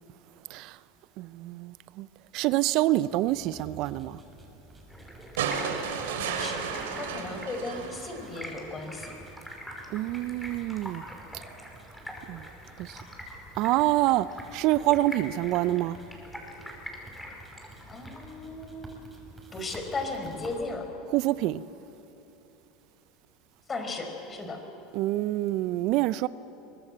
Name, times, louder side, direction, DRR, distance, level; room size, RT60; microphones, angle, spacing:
voice 1, 1.2-2.1 2.3-4.2 9.9-11.0 12.3-12.4 12.8-13.0 13.6-16.0 21.1-21.6 24.9-26.3, right 16 dB, 60° right, 0.5 m, -26 dB
sms texting with vibrations, 3.1-20.7, right 2 dB, 15° right, 6.3 m, -51 dB
Stream, 4.9-18.3, equal, 5° left, 5.4 m, -45 dB
sound 1, 5.4-8.7 10.0-10.1, right 6 dB, 80° right, 2.9 m, -33 dB
voice 2, 6.2-6.7 6.9-9.1 17.9-19.0 19.5-20.9 23.7-24.6, left 3 dB, 25° left, 4.8 m, -36 dB
23.5 x 20.0 x 7.9 m
hypercardioid pair, 90°, 0 cm